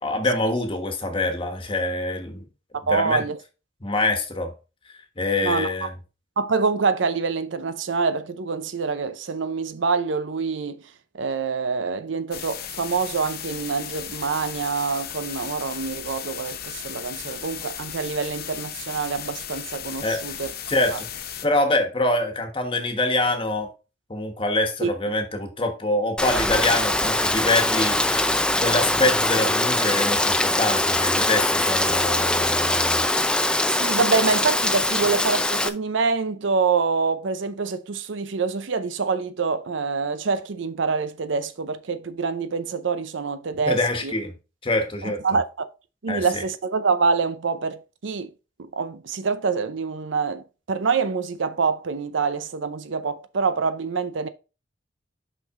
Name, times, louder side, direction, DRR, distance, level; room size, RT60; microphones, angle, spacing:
voice 1, 0.0-2.5 2.9-3.2 3.8-4.5 5.2-5.9 20.0-20.2 20.7-21.1 21.4-23.7 24.1-33.0 43.7-44.3 44.6-45.2 46.1-46.4, left 2 dB, 30° left, 1.3 m, -25 dB
voice 2, 2.7-3.4 5.4-5.9 6.4-10.8 11.1-20.5 20.9-21.0 24.8-24.9 33.7-44.1 45.0-45.7 46.0-48.3 48.6-54.3, right 4 dB, 70° right, 0.6 m, -26 dB
sound 1, 12.3-21.5, left 9 dB, 50° left, 0.7 m, -36 dB
Rain, 26.2-35.7, left 1 dB, 5° left, 0.4 m, -22 dB
5.9 x 5.5 x 3.7 m
head